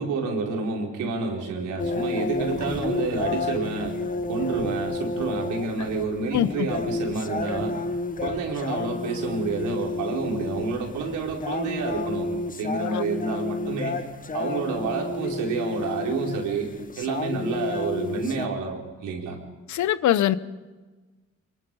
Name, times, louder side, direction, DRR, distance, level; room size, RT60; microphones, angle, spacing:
voice 1, 0.0-4.0 4.3-7.8 8.2-14.0 14.3-16.7 17.0-19.4, right 4 dB, 85° right, 0 dB, 4.6 m, -29 dB
sound 1, 1.8-18.5, left 3 dB, 25° left, 1.2 m, -31 dB
voice 2, 6.3-6.7 12.9-13.0 19.7-20.4, left 12 dB, 70° left, 16 dB, 0.9 m, -23 dB
24.0 x 23.5 x 5.6 m, 1.3 s
cardioid pair, 90°, 30 cm